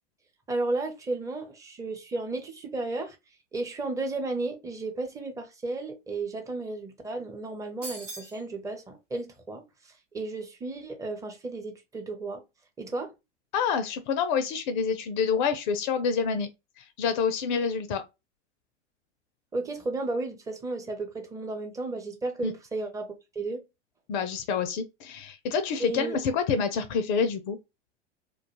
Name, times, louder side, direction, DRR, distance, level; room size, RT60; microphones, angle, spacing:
voice 1, 0.5-3.2 3.5-9.6 10.1-12.4 12.8-13.1 19.5-23.6 25.8-26.2, right 2 dB, 10° right, 0.5 m, -33 dB
sound 1, 7.8-8.4, right 3 dB, 90° right, 0.9 m, -39 dB
voice 2, 13.5-16.5 16.8-18.0 22.4-22.5 24.1-27.6, left 6 dB, 45° left, 0.4 m, -27 dB
2.3 x 2.2 x 2.9 m
hypercardioid pair, 95°, 36 cm